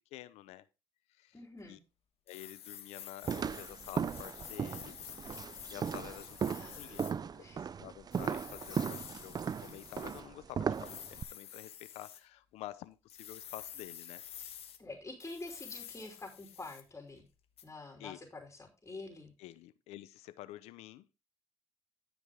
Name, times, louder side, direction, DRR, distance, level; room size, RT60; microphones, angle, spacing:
voice 1, 0.1-0.7 1.2-1.4 1.7-1.8 2.3-5.0 5.7-14.2 18.0-18.2 19.4-21.1, left 15 dB, 90° left, 15 dB, 0.7 m, -49 dB
voice 2, 1.3-1.8 6.5-7.0 7.4-7.6 14.8-17.3 17.6-19.3, left 2 dB, 25° left, 1 dB, 3.4 m, -47 dB
sound 1, 2.3-7.1 8.1-10.2 10.7-12.2 13.1-14.8 15.2-16.9 17.6-17.7, left 10 dB, 70° left, 1.4 m, -49 dB
sound 2, 3.2-11.2, right 7 dB, 40° right, 0.4 m, -37 dB
13.5 x 5.2 x 3.6 m, 0.28 s
supercardioid pair, 70°, 11 cm